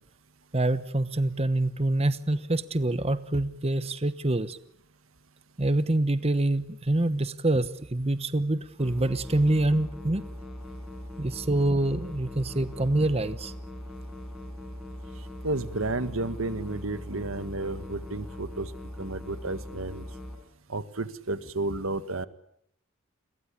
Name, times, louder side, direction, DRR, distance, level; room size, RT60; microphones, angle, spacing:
voice 1, 0.5-4.6 5.6-10.2 11.2-13.5, right 2 dB, 30° right, 13 dB, 1.1 m, -26 dB
sound 1, 8.8-20.4, left 1 dB, ahead, 7.0 m, -40 dB
voice 2, 15.4-18.7 19.0-20.1 20.7-22.3, right 2 dB, 85° right, 12 dB, 1.7 m, -32 dB
30.0 x 22.5 x 8.7 m, 0.72 s
head